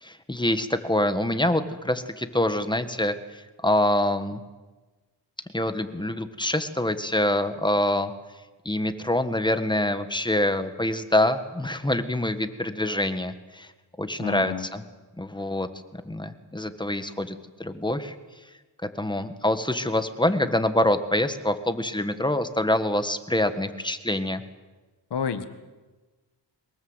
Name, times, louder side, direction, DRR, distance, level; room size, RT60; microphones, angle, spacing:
voice 1, 0.0-3.1 3.6-4.4 5.5-8.1 8.6-13.7 14.0-14.8 15.2-15.7 16.0-18.1 19.0-24.4, left 1 dB, 10° left, 10 dB, 1.5 m, -25 dB
voice 2, 14.2-14.7 25.1-25.5, left 7 dB, 70° left, 10 dB, 1.8 m, -29 dB
23.0 x 21.0 x 8.0 m, 1.2 s
wide cardioid pair, 100°, 42 cm